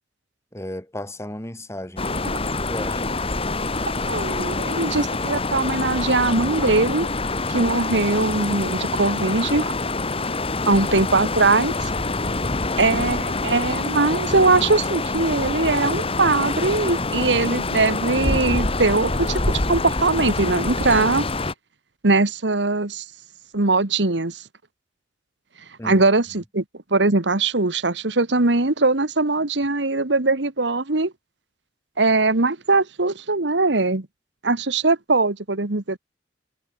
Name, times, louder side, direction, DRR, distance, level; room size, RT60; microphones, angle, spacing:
voice 1, 0.5-2.1 2.5-3.2 10.6-10.8 25.8-26.1, left 1 dB, 15° left, 4.3 m, -34 dB
sound 1, 2.0-21.5, left 3 dB, 35° left, 2.1 m, -26 dB
voice 2, 4.1-7.1 7.5-9.7 10.7-11.9 12.8-21.2 22.0-23.0 23.5-24.4 25.8-26.6 26.9-31.1 32.0-34.1 34.4-36.0, right 3 dB, 85° right, 1.7 m, -21 dB
head